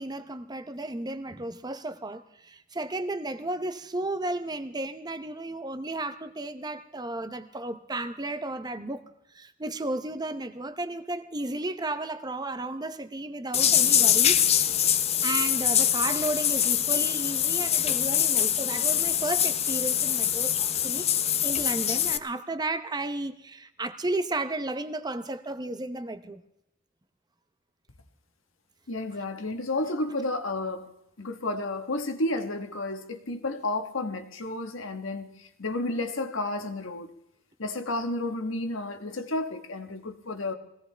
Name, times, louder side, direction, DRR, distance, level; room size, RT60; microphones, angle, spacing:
voice 1, 0.0-14.5 15.2-21.1 21.4-26.4, right 2 dB, 20° right, 0.7 m, -33 dB
sound 1, 13.5-22.2, left 9 dB, 30° left, 0.5 m, -24 dB
voice 2, 28.9-30.9 31.2-37.1 37.6-40.5, left 2 dB, 75° left, 1.3 m, -31 dB
21.5 x 17.0 x 3.4 m
head